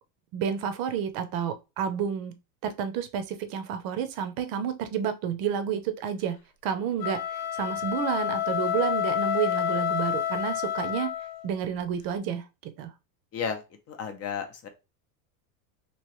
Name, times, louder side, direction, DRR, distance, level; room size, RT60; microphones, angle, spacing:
voice 1, 0.3-2.4 2.6-6.4 6.6-11.1 11.4-12.9, right 8 dB, 45° right, 0.7 m, -30 dB
sound 1, 6.9-11.5, left 10 dB, 80° left, 0.7 m, -29 dB
voice 2, 13.3-14.7, left 6 dB, 30° left, 0.7 m, -33 dB
3.1 x 2.9 x 3.0 m
supercardioid pair, 140°, 48 cm